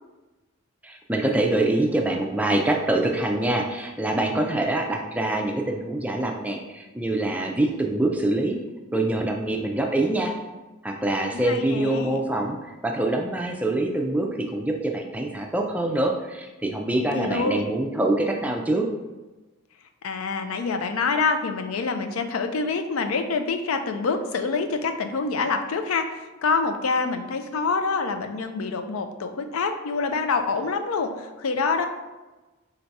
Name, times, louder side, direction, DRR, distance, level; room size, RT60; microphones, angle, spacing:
voice 1, 0.8-8.6 8.9-10.3 10.8-18.9, right 1 dB, 5° right, 1 dB, 0.3 m, -25 dB
voice 2, 11.3-12.2 17.0-17.6 20.0-31.9, left 4 dB, 85° left, 7 dB, 0.4 m, -26 dB
3.8 x 2.7 x 4.5 m, 1.2 s
head